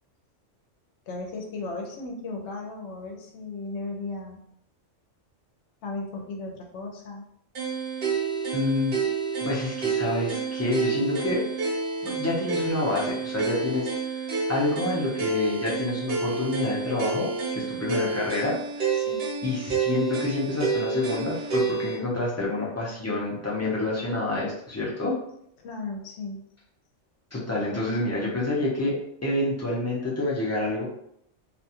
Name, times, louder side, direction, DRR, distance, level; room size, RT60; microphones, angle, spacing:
voice 1, 1.1-4.4 5.8-7.2 18.9-19.2 25.6-26.4, left 3 dB, 75° left, 1 dB, 0.9 m, -36 dB
sound 1, 7.5-22.0, right 5 dB, 60° right, 0.9 m, -29 dB
voice 2, 8.5-9.0 9.4-11.4 12.0-13.9 14.5-19.1 19.4-25.2 27.3-30.9, left 2 dB, 20° left, -6 dB, 0.4 m, -28 dB
2.5 x 2.3 x 2.8 m, 0.74 s
omnidirectional pair, 1.2 m